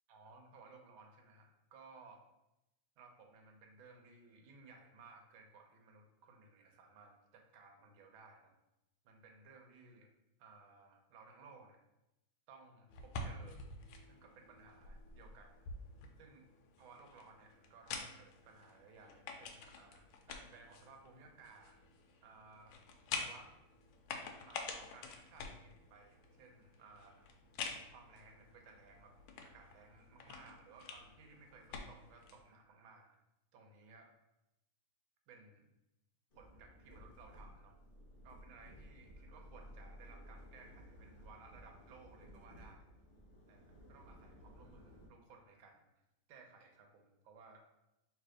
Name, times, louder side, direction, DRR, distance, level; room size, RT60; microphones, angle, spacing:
voice 1, 0.1-2.2 3.0-8.5 9.0-10.1 10.4-11.8 12.5-13.6 14.1-15.6 16.2-16.4 16.8-21.8 22.2-22.8 23.1-23.5 24.5-27.3 27.9-29.1 29.4-33.2 33.5-34.1 35.3-35.7 36.3-37.7 38.2-42.9 43.5-45.8 46.3-47.6, right 4 dB, 75° right, 3 dB, 1.5 m, -59 dB
sound 1, 12.9-32.4, left 4 dB, 80° left, 1.4 m, -49 dB
sound 2, 36.3-45.1, equal, 60° left, 0.5 m, -57 dB
3.3 x 3.2 x 4.8 m, 0.92 s
omnidirectional pair, 2.3 m